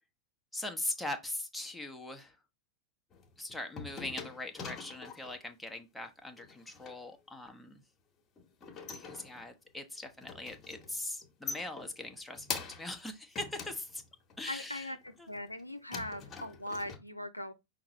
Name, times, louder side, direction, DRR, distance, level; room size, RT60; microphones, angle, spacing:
voice 1, 0.5-2.4 3.4-7.8 8.9-14.0 14.4-15.3, left 1 dB, 5° left, 0.8 m, -41 dB
sound 1, 3.1-5.4 6.4-7.0 8.4-9.7 10.0-10.9 11.2-13.0 13.3-14.5 15.0-15.6 15.9-17.0, left 5 dB, 25° left, 1.2 m, -44 dB
voice 2, 14.5-17.5, left 1 dB, 90° left, 0.5 m, -40 dB
5.7 x 2.6 x 3.0 m
figure-of-eight pair, 90°, 0 cm